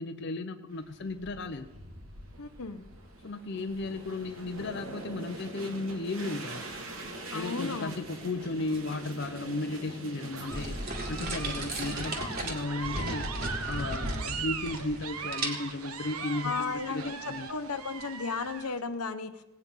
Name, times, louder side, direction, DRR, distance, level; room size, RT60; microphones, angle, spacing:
voice 1, 0.0-1.7 3.2-6.7 7.3-10.8 11.1-13.3 13.7-17.5, left 2 dB, 50° left, 6 dB, 0.6 m, -35 dB
sound 1, 0.7-12.7, right 2 dB, 65° right, 1.9 m, -43 dB
voice 2, 2.4-2.8 7.3-8.0 16.4-19.3, left 4 dB, 85° left, 10 dB, 1.0 m, -34 dB
sound 2, 10.2-18.8, right 6 dB, 80° right, 1.1 m, -39 dB
sound 3, 10.5-15.1 15.3-15.9, right 1 dB, 40° right, 2.0 m, -35 dB
18.0 x 9.2 x 5.5 m, 1.1 s
head